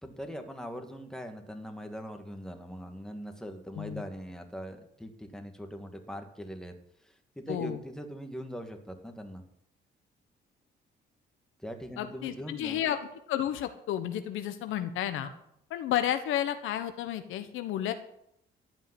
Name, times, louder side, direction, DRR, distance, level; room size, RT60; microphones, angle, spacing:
voice 1, 0.0-6.7 7.0-9.4 11.6-12.8, equal, 5° left, 5 dB, 2.2 m, -41 dB
voice 2, 7.5-7.8 12.0-15.3 15.7-17.9, left 11 dB, 90° left, 9 dB, 1.2 m, -32 dB
14.5 x 5.7 x 9.9 m, 0.74 s
cardioid pair, 90°, 20 cm